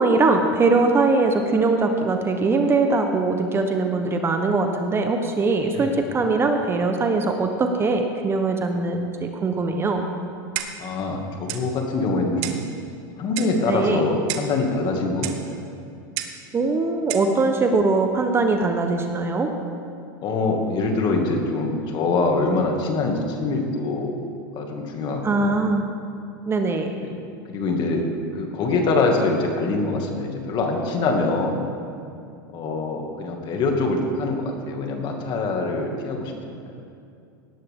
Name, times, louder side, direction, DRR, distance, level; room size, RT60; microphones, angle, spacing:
voice 1, 0.0-10.1 13.7-14.0 16.5-19.5 25.2-25.9 26.5-26.9, right 3 dB, 20° right, 5 dB, 1.1 m, -21 dB
Clock, 10.6-10.9 11.5-11.7 12.4-12.7 13.4-13.6 14.3-14.6 15.2-15.4 16.2-16.4 17.1-17.3, right 11 dB, 60° right, 1.2 m, -31 dB
voice 2, 10.8-12.6 13.2-15.6 20.2-24.1 24.5-25.5 27.0-27.2 27.5-28.0 28.3-31.6 32.5-36.3, left 3 dB, 40° left, 2 dB, 2.3 m, -24 dB
18.0 x 12.0 x 3.8 m, 2.5 s
hypercardioid pair, 115°, 11 cm